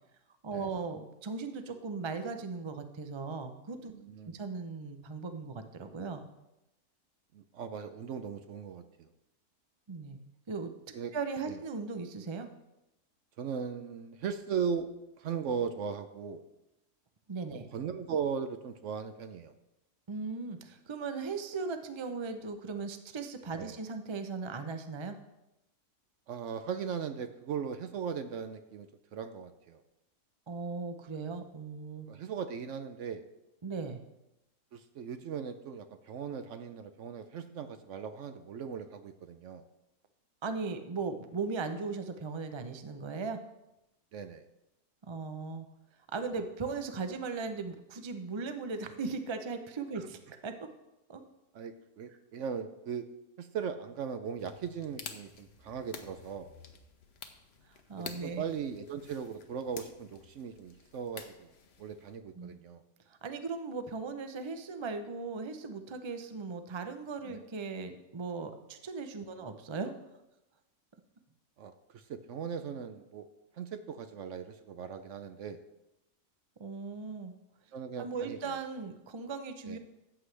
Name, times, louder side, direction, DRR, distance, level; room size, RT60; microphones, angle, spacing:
voice 1, 0.4-3.9 4.3-6.2 9.9-10.7 11.1-12.5 17.3-17.7 20.1-25.2 30.5-32.1 33.6-34.0 40.4-43.4 45.1-45.7 46.1-50.5 51.1-51.2 57.9-58.4 62.4-62.6 63.1-69.9 76.6-77.3 78.0-79.8, right 4 dB, 45° right, 8 dB, 0.3 m, -38 dB
voice 2, 3.9-4.3 7.3-9.1 10.9-11.1 11.5-11.6 13.4-14.9 15.2-16.4 17.7-19.5 23.6-23.8 26.3-29.8 32.1-33.3 34.7-39.6 44.1-44.4 51.5-53.1 53.4-56.5 58.0-61.5 61.8-62.8 67.3-67.4 71.6-73.3 73.6-75.6 77.7-78.6 79.6-79.8, right 7 dB, 65° right, 9 dB, 0.8 m, -38 dB
sound 1, 54.4-62.2, left 6 dB, 50° left, 0.9 m, -50 dB
13.5 x 7.9 x 3.3 m, 0.93 s
omnidirectional pair, 1.6 m